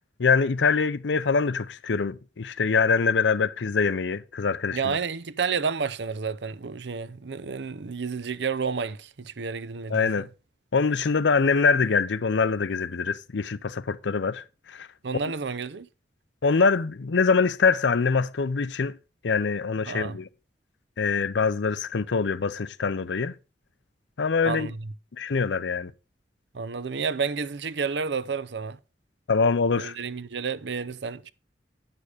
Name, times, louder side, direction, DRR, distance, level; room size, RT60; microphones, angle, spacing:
voice 1, 0.2-5.0 9.9-10.3 10.7-14.9 16.4-19.0 19.2-20.3 21.0-23.3 24.2-24.7 25.2-25.9 29.3-30.0, left 5 dB, 85° left, 0.6 m, -24 dB
voice 2, 4.7-10.3 15.0-15.9 19.9-20.2 24.4-24.9 26.5-28.8 29.8-31.3, right 5 dB, 70° right, 0.6 m, -30 dB
9.9 x 6.9 x 4.8 m
head